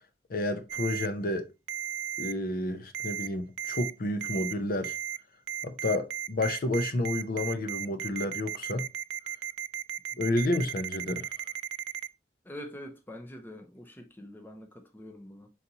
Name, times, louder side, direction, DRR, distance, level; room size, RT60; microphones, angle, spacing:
voice 1, 0.3-1.5 2.2-4.9 5.6-8.9 10.2-11.3, left 1 dB, 55° left, 0.6 m, -30 dB
Ringtone, 0.7-1.1 1.7-2.3 2.9-3.3 3.6-3.9 4.2-4.5 4.8-5.2 5.5-12.1, right 11 dB, 80° right, 0.3 m, -35 dB
voice 2, 12.4-15.5, left 1 dB, 10° left, 0.6 m, -45 dB
4.1 x 4.0 x 2.7 m
head